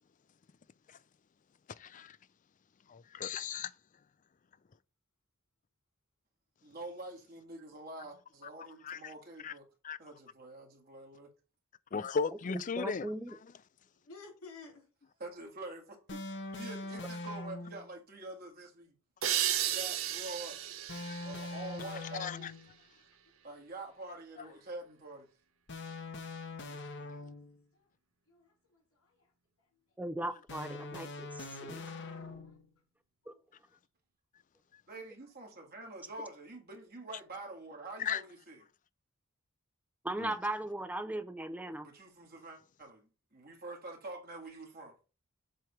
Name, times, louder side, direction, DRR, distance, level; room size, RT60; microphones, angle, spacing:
voice 1, 1.8-2.2 2.9-3.7 8.8-9.1 9.4-9.5 9.8-10.0 11.9-13.5 22.2-22.5 38.0-38.2 40.2-40.4, left 6 dB, 40° left, 0.4 m, -36 dB
voice 2, 6.6-9.6 10.0-11.3 15.2-16.2 16.5-19.0 19.6-20.6 21.2-22.5 23.4-25.3 34.9-38.6 41.7-45.0, right 2 dB, 45° right, 1.9 m, -46 dB
voice 3, 12.5-13.4 30.0-31.8 33.3-33.4 40.0-41.9, right 1 dB, 5° right, 0.6 m, -38 dB
voice 4, 14.0-14.8 26.9-27.4 27.7-27.9 28.3-29.3 32.4-32.5 33.2-33.4, left 4 dB, 85° left, 3.7 m, -54 dB
sound 1, 16.1-17.9 20.9-22.8 25.7-27.6 30.5-32.7, left 2 dB, 55° left, 1.1 m, -43 dB
sound 2, 19.2-22.6, right 11 dB, 75° right, 0.8 m, -35 dB
7.6 x 3.4 x 5.9 m
head